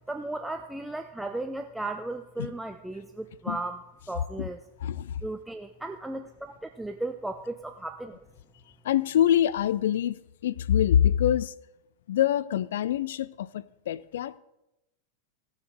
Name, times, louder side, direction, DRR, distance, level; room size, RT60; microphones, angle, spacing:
voice 1, 0.1-3.8 4.1-4.6 5.2-8.2, right 2 dB, 5° right, 0.5 m, -35 dB
voice 2, 4.8-5.2 8.8-11.5 12.1-14.4, left 10 dB, 60° left, 0.3 m, -25 dB
16.0 x 6.5 x 4.6 m
figure-of-eight pair, 90°, 0 cm